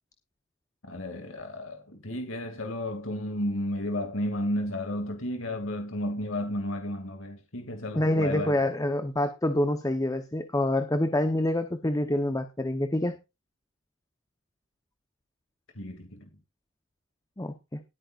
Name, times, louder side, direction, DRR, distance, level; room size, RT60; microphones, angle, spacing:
voice 1, 0.8-8.6 15.7-16.3, left 1 dB, 75° left, 2.5 m, -33 dB
voice 2, 7.9-13.2 17.4-17.8, left 1 dB, 15° left, 0.9 m, -27 dB
19.5 x 9.0 x 2.5 m
head